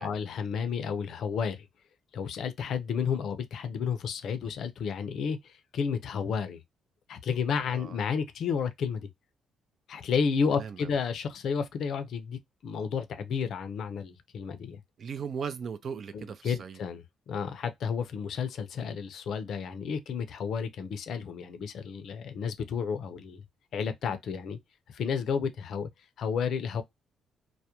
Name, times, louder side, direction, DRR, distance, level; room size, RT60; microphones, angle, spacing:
voice 1, 0.0-1.7 2.1-6.6 7.1-9.1 9.9-14.8 16.1-23.4 23.7-24.6 24.9-25.9 26.2-26.8, left 6 dB, 70° left, 0.5 m, -32 dB
voice 2, 7.6-8.0 10.6-10.9 15.0-16.8, right 6 dB, 55° right, 0.4 m, -38 dB
2.3 x 2.1 x 2.8 m
cardioid pair, 90°, 0 cm